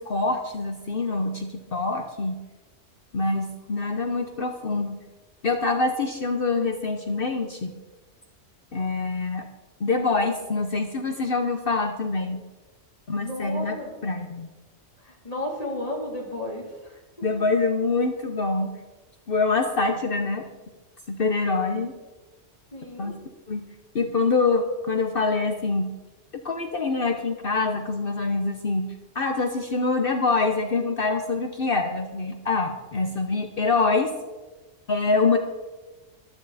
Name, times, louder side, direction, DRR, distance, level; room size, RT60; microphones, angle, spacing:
voice 1, 0.0-2.4 3.1-5.0 5.4-7.7 8.7-9.5 9.8-12.4 13.1-13.8 14.0-14.5 17.2-18.7 19.3-20.5 21.1-21.9 23.0-23.1 23.5-23.6 23.9-25.9 26.4-34.1 34.9-35.4, left 3 dB, 50° left, 6 dB, 1.1 m, -25 dB
voice 2, 13.2-14.0 15.0-17.0 17.3-17.4 22.7-23.2, left 1 dB, 30° left, -2 dB, 3.4 m, -33 dB
14.5 x 12.5 x 4.1 m, 1.2 s
omnidirectional pair, 1.3 m